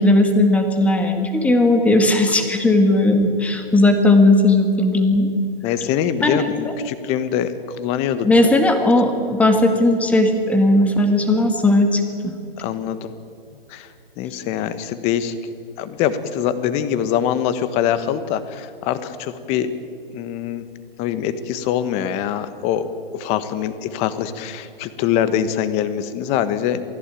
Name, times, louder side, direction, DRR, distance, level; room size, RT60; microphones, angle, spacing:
voice 1, 0.0-5.3 6.2-6.5 8.2-12.3, left 2 dB, 5° left, 5 dB, 1.9 m, -16 dB
voice 2, 5.6-8.3 12.6-13.1 13.7-13.9 14.2-15.3 15.8-19.7 20.1-20.6 21.0-22.9 23.1-26.8, left 9 dB, 20° left, 12 dB, 1.3 m, -23 dB
27.5 x 17.5 x 9.1 m, 2.4 s
hypercardioid pair, 155°, 30 cm